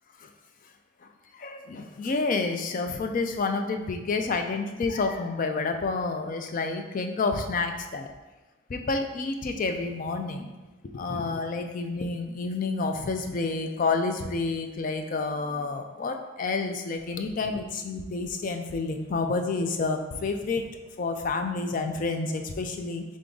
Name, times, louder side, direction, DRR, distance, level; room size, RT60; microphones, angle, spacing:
voice 1, 1.3-8.1 8.7-10.5 10.9-20.6 21.0-23.0, left 3 dB, 40° left, 6 dB, 0.3 m, -29 dB
3.7 x 3.5 x 3.8 m, 1.2 s
head